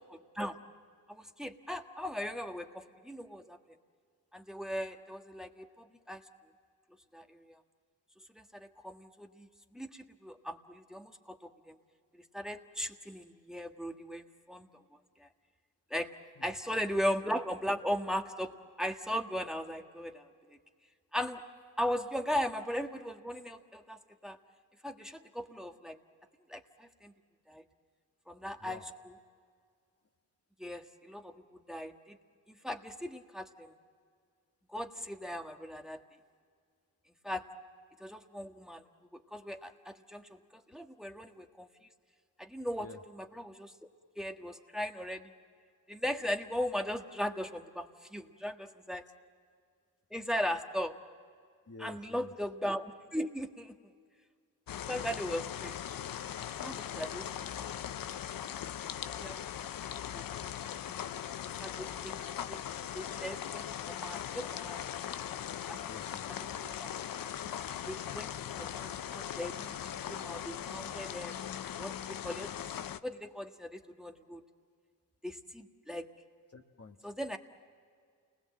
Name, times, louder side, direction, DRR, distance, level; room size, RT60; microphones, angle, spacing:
voice 1, 1.1-3.6 4.3-6.2 7.1-7.2 8.5-9.5 9.7-11.7 12.3-14.7 15.9-16.1 16.4-18.5 18.8-20.6 21.1-21.4 21.8-24.4 24.8-26.0 26.5-27.1 27.5-27.6 28.3-28.8 30.6-32.2 32.6-33.7 34.7-36.0 37.2-37.4 38.0-38.8 39.3-40.4 40.7-41.7 42.4-43.7 44.2-45.3 45.9-49.0 50.1-50.9 51.8-53.7 54.9-55.7 56.6-57.3 59.0-59.4 60.1-60.5 61.6-62.1 62.5-62.6 62.9-65.0 65.7-65.8 66.6-66.9 67.9-68.3 68.6-69.8 70.1-71.3 71.8-72.5 73.0-74.4 75.2-76.1 77.0-77.4, equal, ahead, 4 dB, 1.6 m, -38 dB
voice 2, 51.7-52.3 60.9-61.1 65.9-66.4 76.5-77.0, left 3 dB, 40° left, 4 dB, 1.5 m, -50 dB
sound 1, 54.7-73.0, left 10 dB, 70° left, 0.7 m, -40 dB
29.0 x 20.5 x 7.6 m, 2.1 s
cardioid pair, 55°, 35 cm